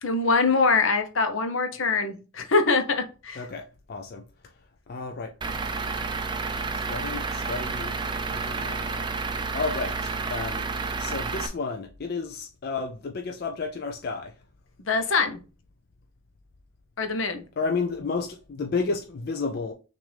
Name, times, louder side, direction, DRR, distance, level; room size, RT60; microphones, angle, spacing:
voice 1, 0.0-3.4 14.8-15.4 17.0-17.4, left 4 dB, 75° left, 0.8 m, -24 dB
voice 2, 3.4-4.3 4.9-5.3 6.7-7.9 8.2-10.7 11.0-14.4 17.6-19.7, left 4 dB, 50° left, 0.4 m, -32 dB
Truck / Idling, 5.4-11.5, right 4 dB, 20° right, 0.4 m, -30 dB
6.0 x 2.6 x 3.3 m
head